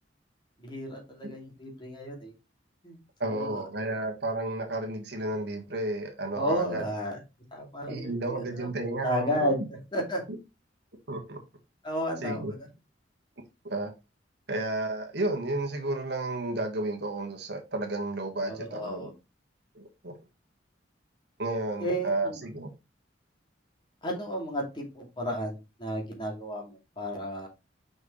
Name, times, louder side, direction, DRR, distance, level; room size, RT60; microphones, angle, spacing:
voice 1, 0.6-2.3 2.8-3.0 3.3-3.6 6.3-7.2 7.5-8.7 9.0-10.2 11.8-12.6 18.4-19.1 21.8-22.4 24.0-27.5, equal, 25° left, 2.5 m, -33 dB
voice 2, 3.2-6.8 7.9-9.7 11.1-11.4 12.2-12.5 13.6-13.9 14.5-19.1 19.7-20.1 21.4-22.7, right 2 dB, 60° right, 1.6 m, -32 dB
6.2 x 5.5 x 3.2 m
head